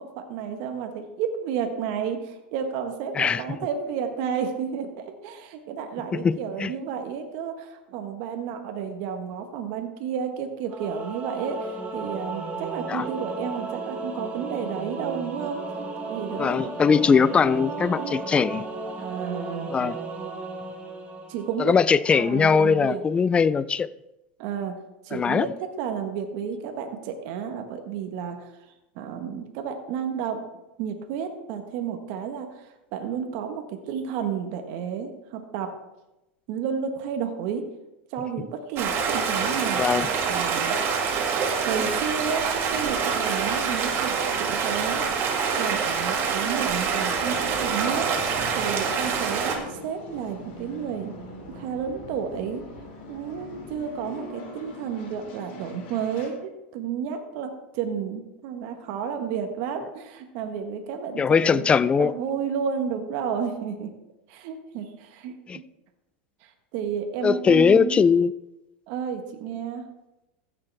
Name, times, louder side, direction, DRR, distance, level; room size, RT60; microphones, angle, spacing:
voice 1, 0.0-15.6 16.0-16.8 17.9-18.1 19.0-19.7 21.3-21.7 22.1-23.0 24.4-24.8 25.0-25.5 25.8-28.5 28.9-30.4 30.8-35.7 36.5-37.7 38.1-39.8 40.3-40.8 41.6-44.1 44.4-48.1 48.5-51.1 51.5-52.6 53.1-61.6 62.0-63.9 64.3-65.6 66.4-68.0 68.9-69.9, right 7 dB, 60° right, 1.4 m, -31 dB
voice 2, 6.1-6.7 12.9-13.1 16.4-18.6 19.7-20.0 21.6-23.9 25.1-25.5 39.8-40.1 61.2-62.1 65.5-65.6 67.2-68.3, left 6 dB, 20° left, 0.3 m, -20 dB
Singing / Musical instrument, 10.7-22.0, right 3 dB, 25° right, 1.7 m, -34 dB
Stream, 38.8-49.6, right 6 dB, 45° right, 2.0 m, -26 dB
sound 1, 46.9-56.3, left 2 dB, 65° left, 3.2 m, -41 dB
15.5 x 6.7 x 3.4 m
supercardioid pair, 115°, 6 cm